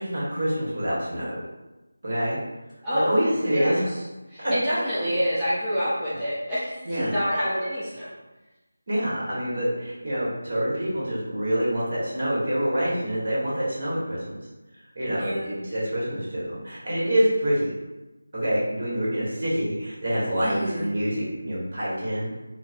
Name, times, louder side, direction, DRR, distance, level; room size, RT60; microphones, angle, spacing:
voice 1, 0.0-1.4 2.0-2.4 2.9-3.8 4.4-4.5 5.0-5.1 6.8-7.2 8.9-14.4 14.9-17.7 18.3-22.3, equal, 50° right, -7 dB, 1.3 m, -26 dB
voice 2, 3.5-4.0 4.3-8.1 15.1-15.5 20.4-20.9, equal, 5° right, -16 dB, 0.4 m, -27 dB
3.7 x 2.1 x 2.5 m, 1.1 s
figure-of-eight pair, 170°, 0 cm